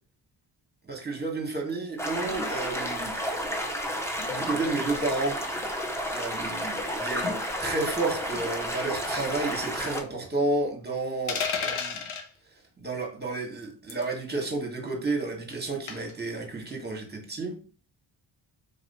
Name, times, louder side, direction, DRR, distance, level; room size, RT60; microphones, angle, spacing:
voice 1, 0.8-3.2 4.3-5.4 6.1-12.0 12.8-17.6, right 3 dB, 20° right, 1.4 m, -31 dB
sound 1, 2.0-10.0, equal, 5° left, 0.8 m, -31 dB
sound 2, 11.3-12.3 13.9-14.1 15.9-16.2, left 6 dB, 80° left, 0.9 m, -31 dB
4.1 x 2.9 x 4.1 m
wide cardioid pair, 100°, 48 cm